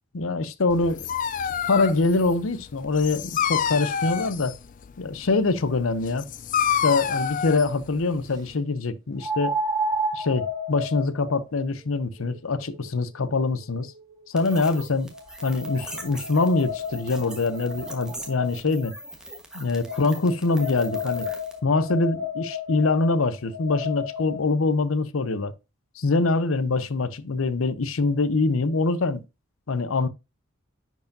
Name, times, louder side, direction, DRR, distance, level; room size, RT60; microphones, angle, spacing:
voice 1, 0.1-1.1 1.7-4.5 5.0-6.3 6.8-9.5 10.1-13.9 14.3-15.1 15.4-18.9 19.5-21.3 21.6-25.5 26.0-29.2 29.7-30.1, left 3 dB, 80° left, 0.7 m, -24 dB
Dog, 0.7-8.5, left 8 dB, 40° left, 0.4 m, -29 dB
sound 1, 9.2-14.4 15.1-18.8 19.8-24.4, left 2 dB, 20° right, 3.0 m, -33 dB
sound 2, 14.4-21.6, right 1 dB, 5° right, 1.3 m, -41 dB
10.5 x 4.7 x 2.6 m
head